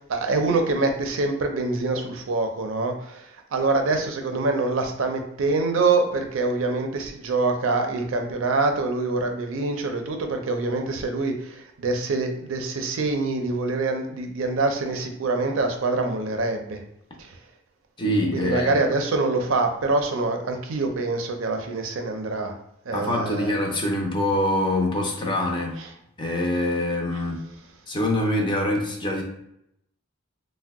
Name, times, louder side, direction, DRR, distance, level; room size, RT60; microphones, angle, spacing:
voice 1, 0.0-3.3 3.5-16.8 17.2-17.3 18.3-22.5 22.9-23.5, right 3 dB, 75° right, 4 dB, 0.5 m, -25 dB
voice 2, 18.0-18.9 22.9-25.8 26.2-27.4 27.9-29.2, left 1 dB, 25° left, 0 dB, 0.5 m, -24 dB
2.7 x 2.1 x 3.4 m, 0.76 s
head